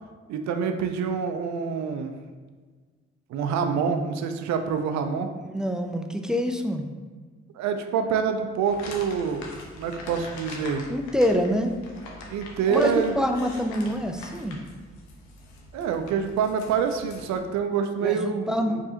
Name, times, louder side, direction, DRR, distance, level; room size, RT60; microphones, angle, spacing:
voice 1, 0.3-2.1 3.3-5.3 7.6-9.4 9.8-10.8 12.3-13.2 15.7-18.8, right 6 dB, 70° right, 7 dB, 0.5 m, -26 dB
voice 2, 5.4-6.9 10.9-11.7 12.7-14.6 18.0-18.8, equal, ahead, 4 dB, 0.4 m, -26 dB
sound 1, 8.7-17.4, left 2 dB, 85° left, 0.6 m, -43 dB
4.7 x 2.6 x 2.8 m, 1.4 s
hypercardioid pair, 45°, 29 cm